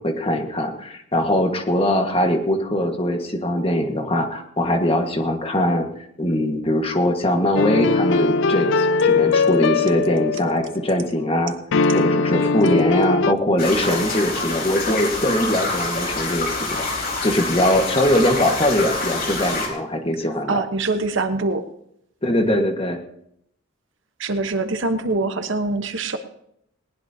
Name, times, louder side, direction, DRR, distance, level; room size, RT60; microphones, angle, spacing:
voice 1, 0.0-5.9 6.2-11.5 11.9-20.6 22.2-23.0, left 1 dB, 30° left, 4 dB, 1.7 m, -21 dB
sound 1, 7.6-10.9 11.7-13.3, left 4 dB, 65° left, 0.5 m, -20 dB
sound 2, 13.6-19.7, left 3 dB, 50° left, 4.1 m, -26 dB
voice 2, 20.5-21.6 24.2-26.2, right 3 dB, 70° right, 8 dB, 1.2 m, -24 dB
19.5 x 19.0 x 2.9 m, 0.74 s
head